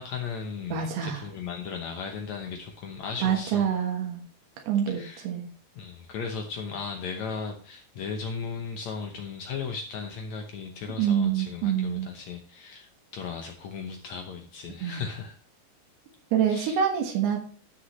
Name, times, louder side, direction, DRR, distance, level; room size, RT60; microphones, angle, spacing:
voice 1, 0.0-3.6 4.9-5.2 5.8-15.3 16.5-16.8, left 5 dB, 75° left, 3 dB, 1.6 m, -36 dB
voice 2, 0.7-1.2 3.2-4.2 4.7-5.5 11.0-12.1 14.8-15.0 16.3-17.4, right 8 dB, 85° right, 2 dB, 3.5 m, -26 dB
12.5 x 6.4 x 3.1 m, 0.41 s
omnidirectional pair, 4.6 m